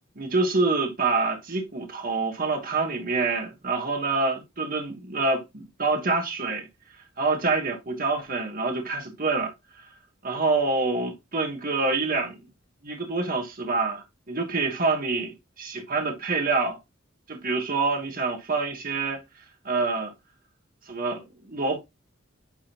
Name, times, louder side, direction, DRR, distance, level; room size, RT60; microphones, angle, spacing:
voice 1, 0.2-6.7 7.2-9.5 9.8-9.9 10.2-12.4 12.8-16.8 17.3-19.2 19.6-20.1 20.9-21.8, right 3 dB, 45° right, 1.3 m, -26 dB
9.6 x 3.6 x 2.9 m
head